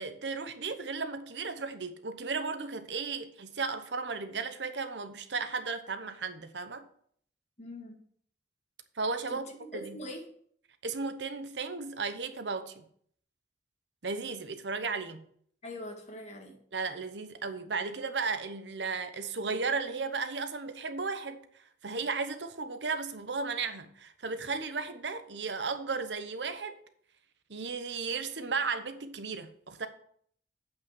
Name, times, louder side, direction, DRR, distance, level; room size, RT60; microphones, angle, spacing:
voice 1, 0.0-6.9 9.0-9.5 9.7-10.0 10.8-12.8 14.0-15.2 16.7-21.4 21.8-26.8 27.5-29.9, right 4 dB, 75° right, 1.0 m, -35 dB
voice 2, 7.6-8.0 9.3-9.4 9.7-10.2 15.6-16.6, left 1 dB, 40° left, 1.9 m, -42 dB
8.2 x 5.8 x 7.2 m
head